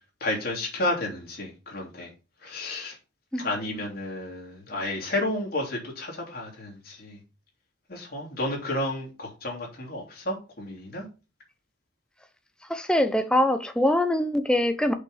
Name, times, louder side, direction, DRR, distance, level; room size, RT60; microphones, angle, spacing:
voice 1, 0.2-2.1 2.4-2.9 3.4-7.2 7.9-11.0, left 1 dB, 50° left, 3.1 m, -31 dB
voice 2, 12.7-14.9, left 1 dB, 5° left, 0.8 m, -23 dB
6.2 x 5.7 x 5.5 m
head